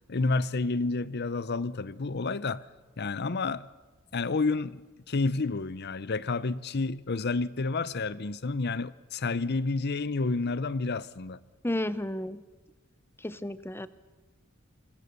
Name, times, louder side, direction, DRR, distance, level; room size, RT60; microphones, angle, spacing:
voice 1, 0.1-2.6 3.0-3.7 4.1-11.4, left 3 dB, 55° left, 0.7 m, -30 dB
voice 2, 11.6-12.4 13.2-13.9, left 1 dB, 10° left, 0.8 m, -32 dB
27.5 x 22.0 x 6.8 m
head